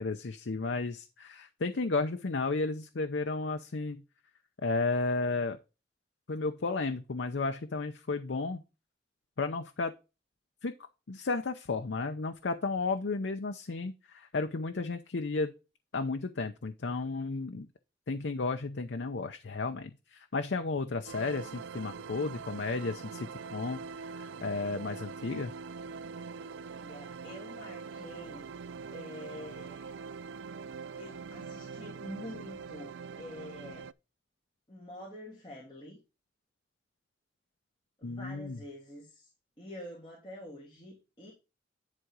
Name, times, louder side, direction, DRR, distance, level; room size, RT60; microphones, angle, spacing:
voice 1, 0.0-4.0 4.6-5.6 6.3-8.6 9.4-9.9 10.6-10.7 11.1-15.5 15.9-17.7 18.1-23.8 24.1-25.5 38.0-38.6, left 3 dB, 85° left, 0.7 m, -33 dB
sound 1, 21.1-33.9, right 5 dB, 85° right, 0.4 m, -43 dB
voice 2, 26.7-28.5 28.9-30.0 31.0-33.9 34.7-36.0 38.0-39.3 39.6-41.3, left 1 dB, 25° left, 2.7 m, -46 dB
11.0 x 3.8 x 4.7 m
head